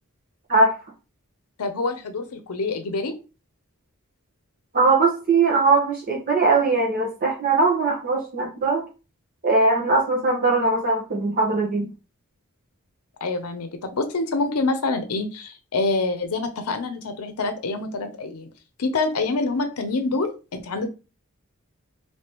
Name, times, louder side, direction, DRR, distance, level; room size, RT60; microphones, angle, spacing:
voice 1, 1.6-3.1 13.2-18.5 18.8-20.9, left 3 dB, 85° left, 7 dB, 0.6 m, -26 dB
voice 2, 4.7-8.8 9.4-11.9, right 3 dB, 40° right, -2 dB, 0.9 m, -20 dB
3.4 x 2.9 x 2.9 m, 0.31 s
head